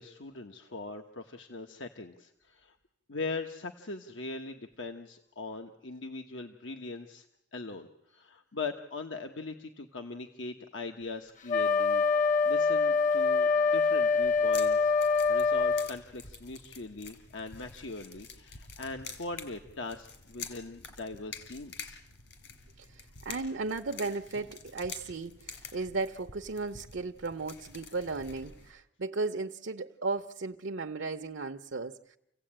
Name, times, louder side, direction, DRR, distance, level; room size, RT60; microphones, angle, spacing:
voice 1, 0.0-2.7 3.1-7.3 7.5-12.0 12.4-22.0, left 3 dB, 90° left, 1.2 m, -41 dB
Wind instrument woodwind instrument, 11.5-15.9, left 4 dB, 45° left, 0.9 m, -25 dB
sound 1, 14.2-28.7, left 5 dB, 70° left, 4.3 m, -48 dB
voice 2, 22.8-32.2, right 3 dB, 80° right, 0.8 m, -35 dB
28.5 x 16.5 x 8.9 m
head